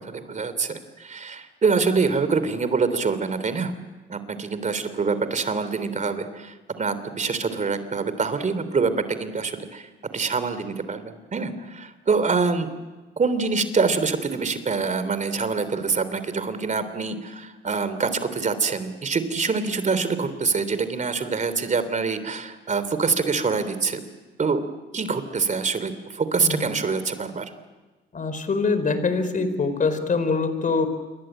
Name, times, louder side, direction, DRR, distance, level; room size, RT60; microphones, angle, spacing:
voice 1, 0.0-3.7 4.1-12.8 13.2-24.0 24.4-24.6 24.9-27.5, right 4 dB, 40° right, 12 dB, 3.3 m, -25 dB
voice 2, 28.1-30.9, left 4 dB, 40° left, 10 dB, 4.6 m, -24 dB
27.5 x 23.5 x 9.0 m, 1.2 s
cardioid pair, 90°, 20 cm